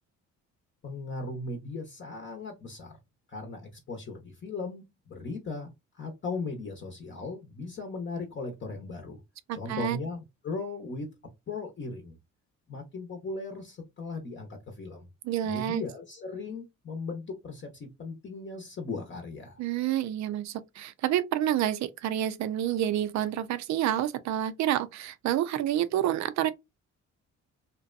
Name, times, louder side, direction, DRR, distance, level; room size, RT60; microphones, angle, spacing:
voice 1, 0.8-3.0 3.3-9.2 9.5-11.1 11.5-12.2 12.7-15.1 15.4-19.6, left 3 dB, 40° left, 0.8 m, -38 dB
voice 2, 9.5-10.0 15.2-15.8 19.6-26.5, right 11 dB, 65° right, 0.5 m, -28 dB
2.6 x 2.2 x 2.4 m
cardioid pair, 90°, 30 cm